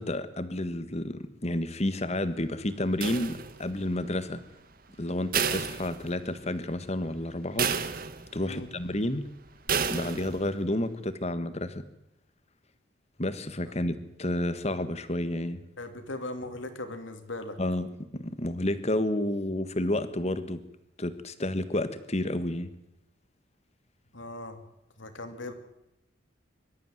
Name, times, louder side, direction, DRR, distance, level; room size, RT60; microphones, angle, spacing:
voice 1, 0.0-4.4 5.0-7.7 8.3-9.3 9.9-11.8 13.2-15.6 17.6-17.9 18.1-20.6 21.0-22.7, left 1 dB, 35° left, 12 dB, 1.6 m, -30 dB
sound 1, 3.0-3.8 5.3-6.5 6.9-7.0 7.6-8.5 9.7-10.5, right 6 dB, 45° right, 1.4 m, -30 dB
voice 2, 15.8-17.6 24.1-24.6 25.0-25.5, left 2 dB, 70° left, 8 dB, 3.0 m, -38 dB
24.0 x 13.0 x 9.3 m, 0.86 s
head